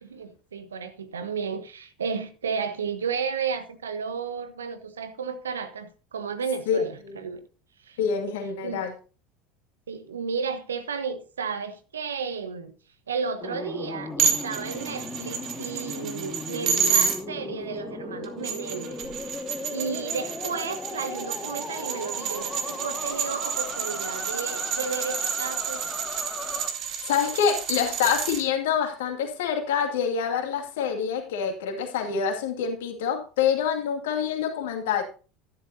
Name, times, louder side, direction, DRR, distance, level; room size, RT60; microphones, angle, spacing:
voice 1, 0.0-7.4 7.8-8.0 8.6-8.8 9.9-12.7 13.1-19.0 19.7-25.8, right 5 dB, 80° right, 1.1 m, -33 dB
voice 2, 8.0-8.9 27.1-35.0, left 7 dB, 70° left, 2.3 m, -26 dB
sound 1, 13.4-26.7, left 3 dB, 15° left, 1.8 m, -37 dB
sound 2, 14.2-17.2 18.2-28.4, right 7 dB, 50° right, 2.1 m, -30 dB
12.5 x 11.0 x 2.8 m
figure-of-eight pair, 75°, 0 cm